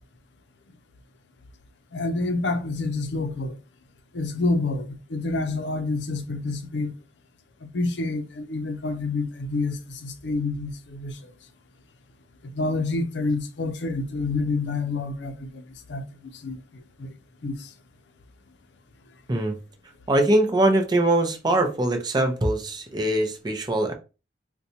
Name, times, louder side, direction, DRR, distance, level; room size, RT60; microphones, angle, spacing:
voice 1, 1.9-3.6 4.1-6.9 7.7-11.2 12.4-15.6 15.9-16.0 16.4-16.6 17.0-17.1 17.4-17.6, left 3 dB, 70° left, 0.5 m, -28 dB
voice 2, 20.1-23.9, right 1 dB, 25° right, 0.6 m, -22 dB
4.0 x 2.2 x 2.7 m
head